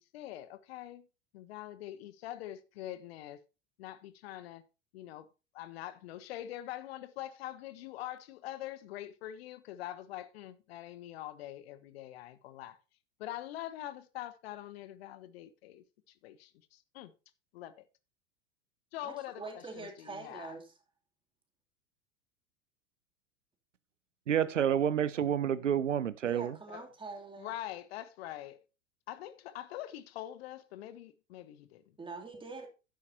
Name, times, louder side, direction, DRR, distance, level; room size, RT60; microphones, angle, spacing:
voice 1, 0.0-1.1 1.3-3.4 3.8-4.6 4.9-5.3 5.5-12.8 13.2-15.8 16.2-17.1 17.5-17.9 18.9-20.6 26.7-26.9 27.4-28.6 29.1-31.8, left 13 dB, 55° left, 1.1 m, -44 dB
voice 2, 19.0-20.7 26.2-27.5 32.0-32.7, right 3 dB, 15° right, 2.8 m, -44 dB
voice 3, 24.3-26.5, right 9 dB, 75° right, 0.7 m, -29 dB
11.5 x 9.8 x 2.8 m
figure-of-eight pair, 85°, 37 cm